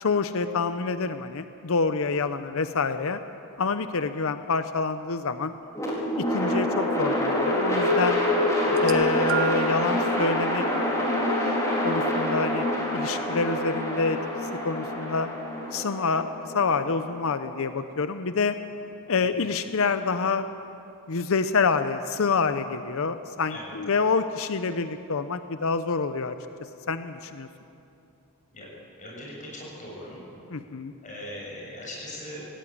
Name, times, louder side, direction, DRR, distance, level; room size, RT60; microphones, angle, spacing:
voice 1, 0.0-3.2 3.6-5.5 6.2-8.2 8.8-10.6 11.8-12.7 12.9-14.2 14.6-15.3 15.7-16.3 16.5-18.6 19.1-20.5 21.1-26.4 26.9-27.5 30.5-30.9, left 4 dB, 65° left, 10 dB, 0.7 m, -27 dB
sound 1, 5.7-17.9, left 1 dB, 15° left, 4.3 m, -26 dB
sound 2, 8.7-9.8 10.7-10.9 12.0-12.1, right 12 dB, 65° right, 1.1 m, -32 dB
voice 2, 29.0-30.3 31.0-32.5, left 1 dB, 35° left, -3 dB, 7.1 m, -40 dB
18.0 x 17.5 x 8.7 m, 2.7 s
head